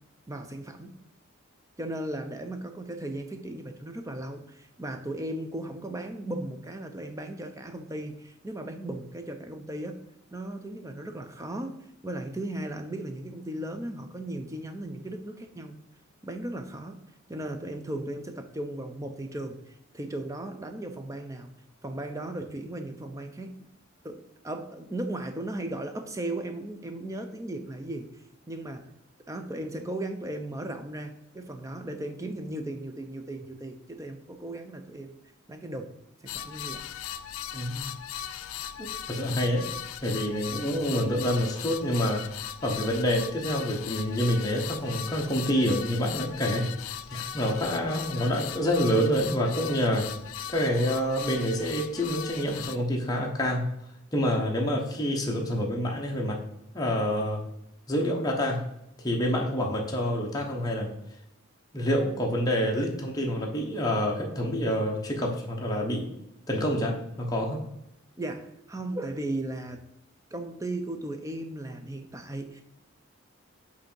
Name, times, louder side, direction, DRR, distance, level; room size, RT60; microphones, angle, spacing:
voice 1, 0.3-0.9 1.8-10.0 10.3-15.8 16.2-17.0 17.3-21.5 21.8-23.6 24.0-28.1 28.5-28.9 29.3-35.2 35.5-35.9 36.2-36.8 68.2-69.8 70.3-72.6, right 1 dB, 15° right, 6 dB, 0.5 m, -36 dB
sound 1, 36.3-52.8, left 10 dB, 75° left, 0.4 m, -38 dB
voice 2, 37.5-37.9 38.8-39.7 40.0-42.2 42.6-50.1 50.5-53.6 54.1-56.4 56.7-57.4 57.9-58.6 59.0-60.9 61.7-66.1 66.5-67.6, equal, 15° left, -1 dB, 0.9 m, -27 dB
7.7 x 2.8 x 4.4 m, 0.80 s
head